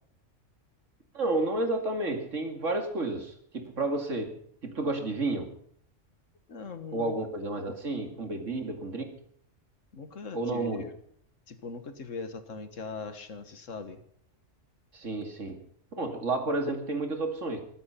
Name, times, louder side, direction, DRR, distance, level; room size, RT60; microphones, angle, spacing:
voice 1, 1.1-4.3 4.6-5.5 6.9-9.1 10.3-10.8 14.9-15.6 16.0-17.6, right 2 dB, 80° right, 4 dB, 2.7 m, -31 dB
voice 2, 6.5-7.2 8.0-8.1 9.9-10.9 11.5-14.0, left 4 dB, 80° left, 9 dB, 1.8 m, -40 dB
22.5 x 9.2 x 5.8 m, 0.64 s
omnidirectional pair, 1.3 m